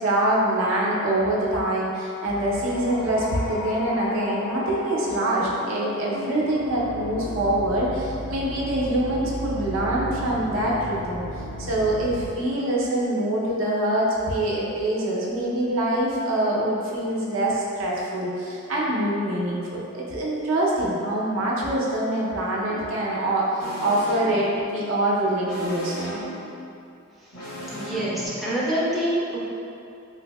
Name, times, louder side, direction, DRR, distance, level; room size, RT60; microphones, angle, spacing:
voice 1, 0.0-11.2 11.6-26.1, right 1 dB, 65° right, -5 dB, 0.6 m, -24 dB
sound 1, 2.3-12.3, left 2 dB, 65° left, 0.5 m, -34 dB
sound 2, 22.6-22.9 23.6-24.7 25.4-26.5 27.3-28.3, equal, 90° left, 1.1 m, -35 dB
voice 2, 27.7-29.4, right 1 dB, ahead, -9 dB, 0.4 m, -26 dB
3.9 x 2.6 x 2.2 m, 2.6 s
head